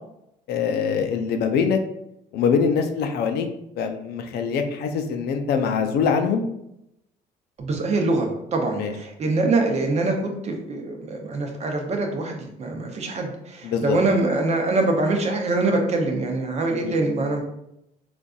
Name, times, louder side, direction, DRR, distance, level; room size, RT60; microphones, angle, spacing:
voice 1, 0.5-1.8 2.3-3.5 3.8-6.4 8.8-8.9 13.6-14.0 16.8-16.9, left 6 dB, 70° left, 6 dB, 0.5 m, -23 dB
voice 2, 7.6-17.4, right 2 dB, 40° right, 2 dB, 0.7 m, -24 dB
3.8 x 2.5 x 2.4 m, 0.81 s
cardioid pair, 110°, 17 cm